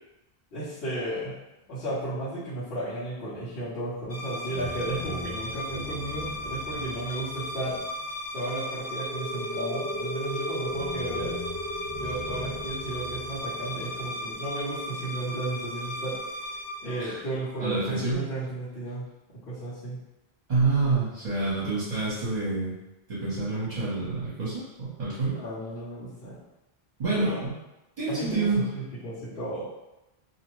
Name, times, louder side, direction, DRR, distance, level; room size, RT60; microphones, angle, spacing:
voice 1, 0.5-1.3 1.7-7.8 8.3-11.4 12.0-16.2 16.8-19.1 19.5-20.0 25.3-26.4 27.1-27.4 28.1-29.7, right 1 dB, 75° left, -15 dB, 1.2 m, -34 dB
sound 1, 4.1-17.7, left 1 dB, 55° left, 0.4 m, -36 dB
sound 2, 8.8-16.2, equal, 5° left, 0.8 m, -37 dB
voice 2, 17.6-18.2 20.5-22.8 23.1-25.3 27.0-27.5 28.0-28.6, right 3 dB, 45° right, -10 dB, 0.9 m, -27 dB
2.7 x 2.0 x 3.0 m, 0.97 s
omnidirectional pair, 1.0 m